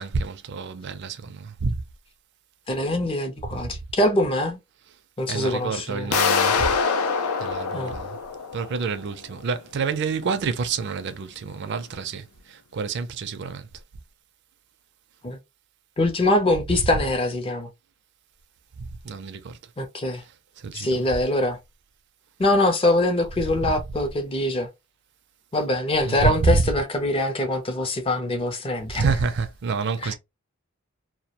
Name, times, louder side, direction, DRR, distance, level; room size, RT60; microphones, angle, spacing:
voice 1, 0.0-1.8 5.3-6.7 7.4-8.2 8.5-13.7 18.8-19.6 20.6-21.0 26.0-26.7 28.9-30.1, right 4 dB, 50° right, 0.4 m, -28 dB
voice 2, 2.7-4.6 5.2-6.2 7.7-7.9 15.2-15.4 16.0-17.7 19.8-20.2 20.7-21.6 22.4-24.7 25.5-29.1 30.0-30.1, left 1 dB, 25° left, 0.4 m, -23 dB
sound 1, 6.1-9.0, left 5 dB, 85° left, 0.5 m, -24 dB
2.2 x 2.1 x 2.8 m
head